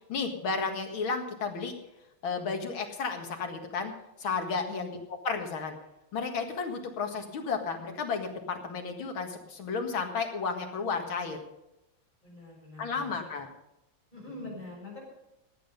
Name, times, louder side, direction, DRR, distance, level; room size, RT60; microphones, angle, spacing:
voice 1, 0.1-1.7 2.2-3.9 4.2-5.7 6.1-11.4 12.8-13.5, left 5 dB, 85° left, 4 dB, 2.6 m, -33 dB
voice 2, 12.2-13.3 14.1-15.0, left 2 dB, 20° left, -2 dB, 6.3 m, -44 dB
17.5 x 9.2 x 5.3 m, 0.92 s
omnidirectional pair, 2.2 m